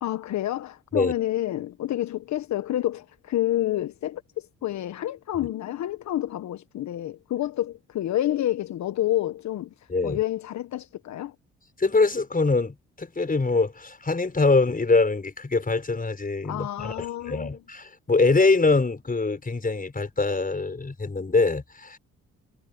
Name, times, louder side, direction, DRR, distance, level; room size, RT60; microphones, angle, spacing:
voice 1, 0.0-9.7 10.0-11.3 16.4-17.6, left 13 dB, 65° left, 1.4 m, -29 dB
voice 2, 11.8-22.0, left 3 dB, 30° left, 5.3 m, -24 dB
hypercardioid pair, 50°, 30 cm